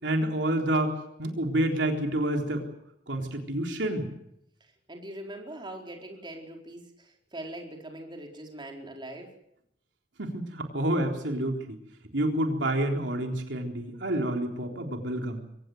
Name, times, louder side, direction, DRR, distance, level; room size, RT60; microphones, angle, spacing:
voice 1, 0.0-2.6 3.1-4.1 10.2-11.8 12.1-15.4, right 1 dB, 70° right, 3 dB, 3.8 m, -28 dB
voice 2, 4.9-9.3, right 1 dB, 25° right, 1 dB, 4.5 m, -42 dB
24.0 x 19.0 x 7.9 m, 0.77 s
head